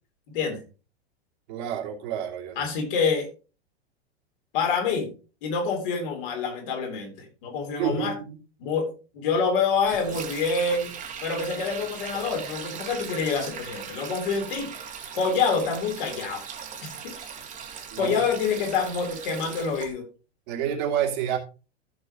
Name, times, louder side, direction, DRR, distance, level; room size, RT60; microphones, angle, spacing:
voice 1, 0.3-0.6 2.6-3.3 4.5-5.1 5.4-8.1 8.6-8.9 9.1-10.9 11.2-14.7 15.1-16.4 16.8-17.1 18.0-20.0, left 5 dB, 50° left, 2 dB, 4.0 m, -26 dB
voice 2, 1.5-2.6 7.8-8.4 17.9-18.1 20.5-21.4, right 9 dB, 45° right, 1 dB, 2.8 m, -28 dB
Sink (filling or washing), 9.8-19.9, right 7 dB, 25° right, 2.2 m, -39 dB
15.0 x 6.3 x 3.0 m, 0.34 s
figure-of-eight pair, 100°, 32 cm